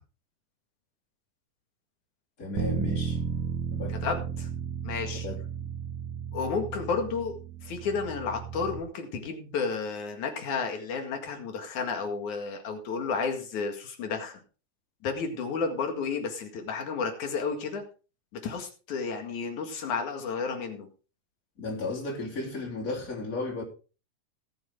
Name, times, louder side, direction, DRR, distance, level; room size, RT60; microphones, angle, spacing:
voice 1, 2.4-3.2 3.7-4.3 5.1-5.7 21.6-23.6, left 2 dB, 25° left, 3.7 m, -35 dB
Bass guitar, 2.6-8.8, right 7 dB, 70° right, 2.5 m, -34 dB
voice 2, 3.9-4.5 4.8-5.3 6.3-7.4 7.6-14.4 15.0-17.8 18.4-20.9, left 5 dB, 70° left, 3.3 m, -32 dB
19.0 x 7.1 x 3.6 m
omnidirectional pair, 3.6 m